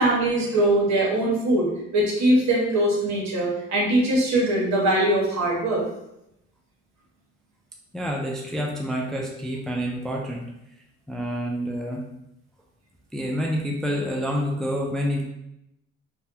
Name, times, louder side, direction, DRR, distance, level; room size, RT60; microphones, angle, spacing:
voice 1, 0.0-1.7 1.9-5.8, right 1 dB, 65° right, -3 dB, 1.2 m, -21 dB
voice 2, 7.9-10.5 11.1-12.0 13.1-15.2, equal, ahead, 0 dB, 0.4 m, -28 dB
3.3 x 2.3 x 2.8 m, 0.83 s
cardioid pair, 90°, 30 cm